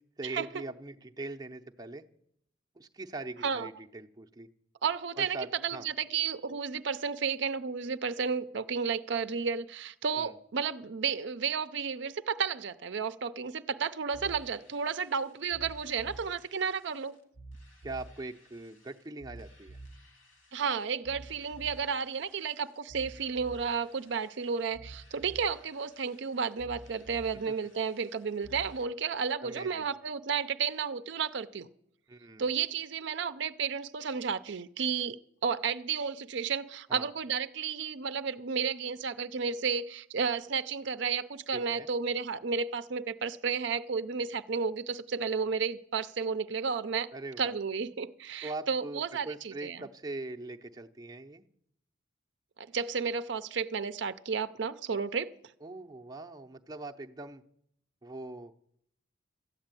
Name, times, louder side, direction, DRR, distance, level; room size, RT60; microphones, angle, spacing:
voice 1, 0.2-2.0 2.8-4.5 5.2-5.9 10.2-10.3 17.8-19.8 27.5-27.6 29.4-29.9 32.1-32.5 36.9-37.1 41.5-41.9 47.1-47.5 48.4-51.4 55.6-57.4 58.0-58.5, right 2 dB, 20° right, 3 dB, 0.6 m, -42 dB
voice 2, 4.8-5.4 5.6-17.2 20.5-31.7 32.4-35.2 35.4-47.1 47.4-49.9 52.6-55.3, right 6 dB, 60° right, 11 dB, 0.5 m, -32 dB
sound 1, 14.1-28.8, right 2 dB, 85° left, 2.9 m, -51 dB
13.5 x 8.7 x 9.0 m, 0.71 s
head